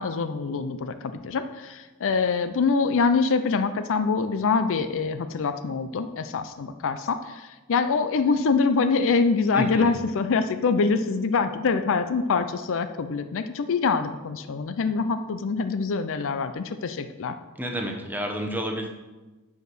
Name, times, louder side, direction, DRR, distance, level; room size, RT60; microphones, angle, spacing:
voice 1, 0.0-17.3, left 4 dB, 60° left, 10 dB, 0.5 m, -25 dB
voice 2, 9.5-10.0 17.6-18.9, equal, 10° right, 2 dB, 1.0 m, -30 dB
8.1 x 4.8 x 6.1 m, 1.2 s
head